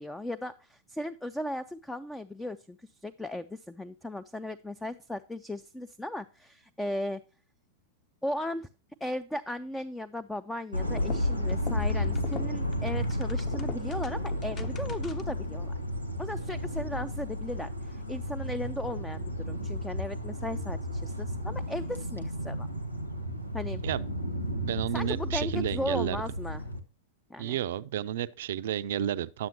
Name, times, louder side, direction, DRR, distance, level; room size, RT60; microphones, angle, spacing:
voice 1, 0.0-7.2 8.2-8.7 9.0-15.7 16.2-22.7 23.5-23.8 24.9-26.6 27.3-27.6, left 1 dB, 5° left, 0.4 m, -36 dB
sound 1, 10.7-26.8, left 1 dB, 90° left, 0.9 m, -33 dB
sound 2, 10.8-15.4, left 5 dB, 25° left, 0.7 m, -44 dB
voice 2, 24.3-26.2 27.4-29.5, right 11 dB, 55° right, 0.4 m, -32 dB
10.5 x 7.4 x 2.8 m
figure-of-eight pair, 95°, 0 cm